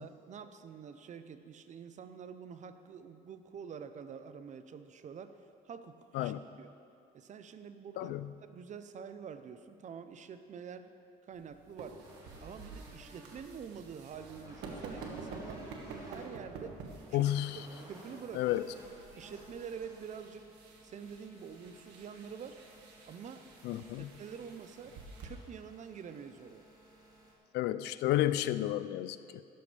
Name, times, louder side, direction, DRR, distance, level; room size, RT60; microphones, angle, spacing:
voice 1, 0.0-5.4 5.6-6.3 6.6-6.7 7.1-10.9 11.2-12.0 12.4-16.7 17.1-17.3 17.5-18.6 19.1-20.5 20.8-22.6 23.1-23.4 24.0-25.0 25.2-26.7, right 7 dB, 45° right, 10 dB, 0.8 m, -47 dB
voice 2, 8.0-8.3 17.1-17.7 18.3-18.6 23.6-24.1 27.5-29.4, left 13 dB, 80° left, 14 dB, 0.5 m, -31 dB
sound 1, 11.3-25.3, right 4 dB, 85° right, 1.8 m, -49 dB
sound 2, 12.0-27.3, right 1 dB, 25° right, 3.6 m, -56 dB
16.5 x 13.5 x 3.4 m, 2.6 s
cardioid pair, 110°, 17 cm